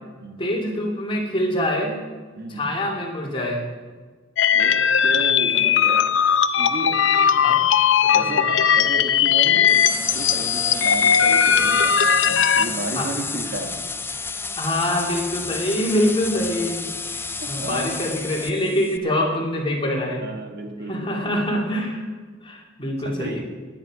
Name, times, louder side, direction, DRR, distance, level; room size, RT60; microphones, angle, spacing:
voice 1, 0.4-1.9 2.5-3.6 7.4-7.6 8.0-8.5 13.0-13.2 13.5-13.6 14.6-20.2 20.9-22.1 22.4-23.4, left 1 dB, 25° left, -1 dB, 2.7 m, -25 dB
voice 2, 2.3-2.7 4.5-6.1 6.6-7.0 8.1-13.8 17.4-18.2 20.2-21.5 23.0-23.4, right 1 dB, 55° right, 4 dB, 1.7 m, -33 dB
sound 1, 4.4-12.7, left 8 dB, 80° left, 0.6 m, -18 dB
sound 2, 9.7-19.0, left 4 dB, 10° left, 0.4 m, -31 dB
18.5 x 9.5 x 4.9 m, 1.4 s
head